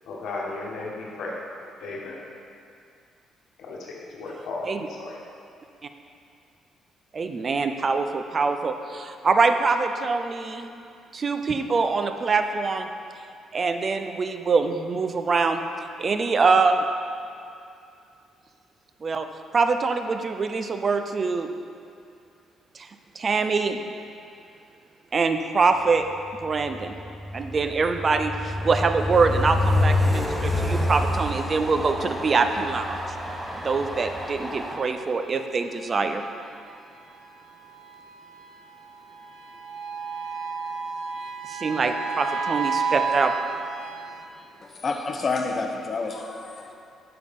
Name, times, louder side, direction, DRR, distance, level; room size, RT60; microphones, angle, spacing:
voice 1, 0.1-1.3 1.8-2.2 3.6-5.2, left 2 dB, 75° left, -3 dB, 1.2 m, -35 dB
voice 2, 7.1-10.7 11.1-12.9 13.5-15.6 16.0-16.8 19.0-19.3 19.5-21.5 22.7-22.9 23.2-23.8 25.1-26.1 26.4-26.9 27.3-33.0 33.6-36.2 41.5-43.3, right 4 dB, 40° right, 8 dB, 0.5 m, -24 dB
Train, 26.3-34.8, left 1 dB, 5° right, 0.8 m, -27 dB
sound 1, 28.8-44.3, right 5 dB, 75° right, 0.7 m, -35 dB
voice 3, 44.6-46.7, left 3 dB, 40° left, 3 dB, 0.8 m, -29 dB
8.3 x 6.8 x 3.6 m, 2.5 s
cardioid pair, 90°, 0 cm